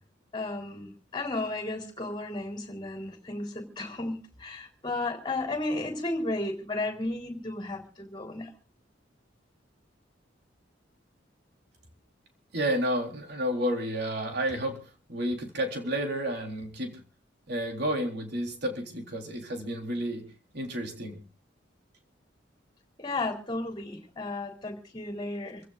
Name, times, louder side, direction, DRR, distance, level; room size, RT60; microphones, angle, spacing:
voice 1, 0.3-8.5 23.0-25.6, left 2 dB, 25° left, 4 dB, 3.7 m, -34 dB
voice 2, 12.5-14.8 15.1-16.9 17.5-20.2 20.5-21.2, equal, 60° right, 3 dB, 3.7 m, -31 dB
27.5 x 16.0 x 2.5 m, 0.34 s
head